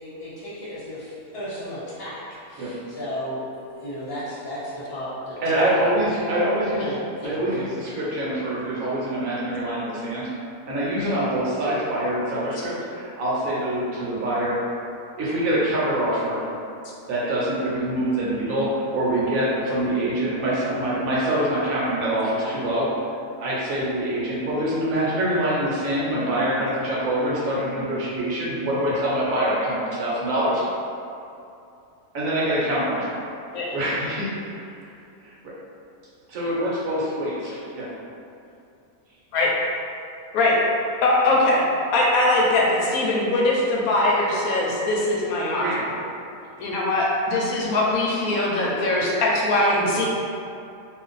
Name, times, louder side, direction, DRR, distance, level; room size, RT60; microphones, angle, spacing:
voice 1, 0.0-3.4 3.7-5.9 6.8-7.7, equal, 50° left, -10 dB, 0.9 m, -34 dB
voice 2, 5.4-6.8 7.2-10.3 10.7-14.7 15.2-16.5 17.1-22.9 23.4-30.6 32.1-33.2 33.7-34.3 35.2-35.5 36.3-37.9 45.6-45.8, right 1 dB, 65° right, -7 dB, 1.2 m, -25 dB
voice 3, 41.0-41.6 41.9-45.6 46.6-50.0, left 2 dB, 75° left, -3 dB, 1.0 m, -21 dB
2.5 x 2.4 x 3.9 m, 2.6 s
omnidirectional pair, 1.6 m